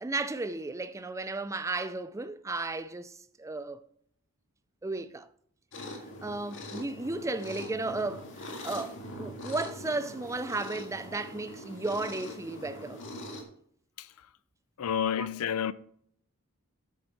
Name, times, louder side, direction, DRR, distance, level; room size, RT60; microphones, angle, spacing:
voice 1, 0.0-3.8 4.8-5.3 6.2-13.0 15.2-15.3, right 2 dB, 15° right, 0.4 m, -34 dB
sound 1, 5.7-13.4, left 1 dB, 55° left, 1.9 m, -42 dB
voice 2, 14.8-15.7, left 8 dB, 75° left, 0.4 m, -29 dB
8.6 x 6.5 x 4.2 m
head